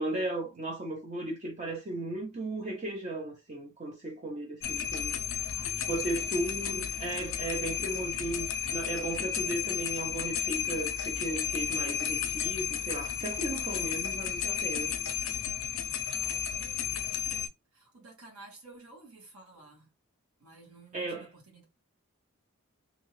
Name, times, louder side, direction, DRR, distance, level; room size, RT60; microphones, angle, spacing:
voice 1, 0.0-5.1 5.9-14.9 20.9-21.3, right 2 dB, 30° right, 0.5 m, -36 dB
sound 1, 4.6-17.5, left 8 dB, 65° left, 0.4 m, -33 dB
voice 2, 5.5-7.0 13.6-14.0 16.2-19.9 20.4-21.6, right 3 dB, 75° right, 1.2 m, -54 dB
2.6 x 2.3 x 3.1 m
head